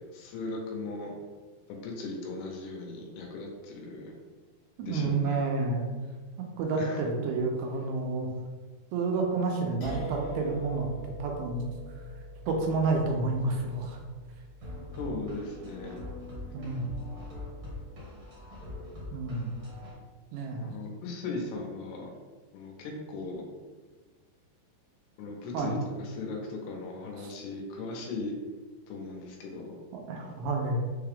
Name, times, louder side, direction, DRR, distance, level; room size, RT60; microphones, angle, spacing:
voice 1, 0.1-1.1 1.7-4.1 4.8-5.4 6.8-7.0 14.9-15.9 20.6-22.1 22.5-23.4 25.2-28.3 28.9-29.8 30.2-30.4, left 3 dB, 80° left, 0 dB, 2.8 m, -38 dB
voice 2, 4.8-5.9 6.6-8.3 8.9-10.9 11.2-11.7 12.5-14.0 16.5-16.9 19.1-19.5 20.3-20.7 25.5-25.7 27.2-27.3 29.9-30.8, right 3 dB, 85° right, 1 dB, 2.7 m, -29 dB
sound 1, 9.8-16.7, right 1 dB, 65° left, 1.9 m, -43 dB
sound 2, 14.6-19.9, left 1 dB, 65° right, 1.5 m, -42 dB
6.5 x 2.3 x 3.3 m, 1.4 s
omnidirectional pair, 4.9 m